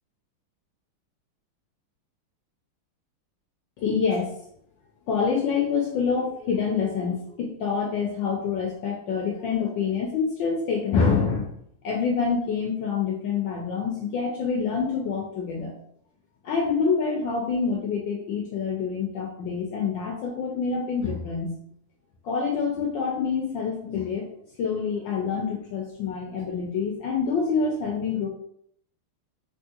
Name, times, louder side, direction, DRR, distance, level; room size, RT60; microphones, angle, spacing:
voice 1, 3.8-4.3 5.1-11.5 11.8-15.7 16.4-21.6 22.2-24.2 24.6-28.3, left 5 dB, 75° left, 0 dB, 1.2 m, -26 dB
3.5 x 2.8 x 2.8 m, 0.68 s
omnidirectional pair, 2.4 m